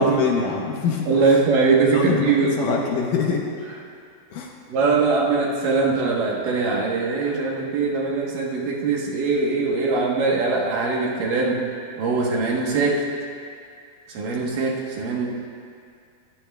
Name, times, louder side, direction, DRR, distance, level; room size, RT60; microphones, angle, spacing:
voice 1, 0.0-1.4 1.9-3.4 4.3-4.5, left 5 dB, 70° left, 0 dB, 2.3 m, -24 dB
voice 2, 1.1-2.6 4.7-11.6 12.0-13.0 14.1-15.3, right 4 dB, 70° right, -2 dB, 2.7 m, -21 dB
25.0 x 12.0 x 2.3 m, 2.3 s
omnidirectional pair, 4.3 m